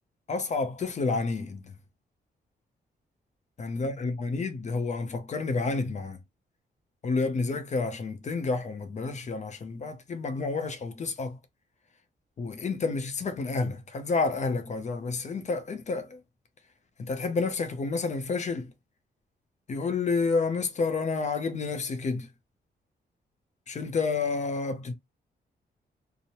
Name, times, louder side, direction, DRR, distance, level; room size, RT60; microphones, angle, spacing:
voice 1, 0.3-1.7 3.6-6.2 7.0-11.4 12.4-16.2 17.0-18.7 19.7-22.3 23.7-24.9, left 4 dB, 40° left, 0.5 m, -30 dB
2.9 x 2.1 x 2.8 m
cardioid pair, 115°, 18 cm